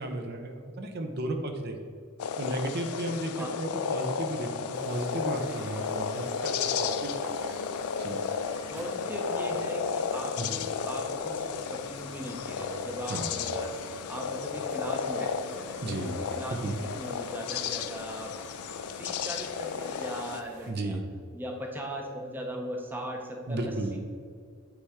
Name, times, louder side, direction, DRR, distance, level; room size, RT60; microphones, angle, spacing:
voice 1, 0.0-1.9 2.4-7.7 8.0-8.2 10.4-10.5 13.1-13.4 15.8-16.2 16.6-16.8 20.7-21.0 23.5-23.9, right 1 dB, 45° right, 4 dB, 0.7 m, -34 dB
sound 1, 2.2-20.4, left 6 dB, 80° left, 0.4 m, -33 dB
sound 2, 4.7-20.7, right 2 dB, 85° right, 1.2 m, -52 dB
voice 2, 8.7-13.7 14.1-18.3 19.0-21.0 21.3-24.0, equal, 10° right, 1 dB, 0.6 m, -39 dB
8.3 x 3.5 x 4.9 m, 2.2 s
head